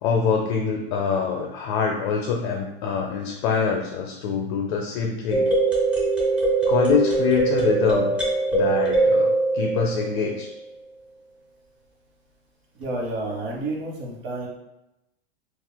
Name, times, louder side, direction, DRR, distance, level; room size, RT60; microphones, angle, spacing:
voice 1, 0.0-5.5 6.7-8.2 8.5-10.5, left 6 dB, 50° left, 1 dB, 0.5 m, -24 dB
sound 1, 5.3-10.4, right 3 dB, 5° right, 0.7 m, -22 dB
voice 2, 12.7-14.5, right 2 dB, 70° right, -1 dB, 1.1 m, -30 dB
3.6 x 2.4 x 2.2 m, 0.91 s
hypercardioid pair, 130°, 31 cm